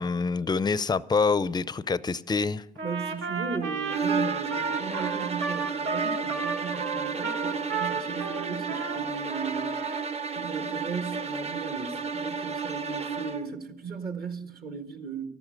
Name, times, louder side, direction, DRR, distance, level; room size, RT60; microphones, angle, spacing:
voice 1, 0.0-2.6, left 4 dB, 20° left, 0.5 m, -26 dB
voice 2, 2.8-9.8 10.3-15.3, right 5 dB, 50° right, 1.5 m, -36 dB
Trumpet, 2.8-9.0 9.3-10.1, right 5 dB, 80° right, 1.8 m, -33 dB
sound 1, 3.9-13.5, right 5 dB, 30° right, 0.8 m, -32 dB
12.5 x 12.5 x 6.4 m
cardioid pair, 90°, 20 cm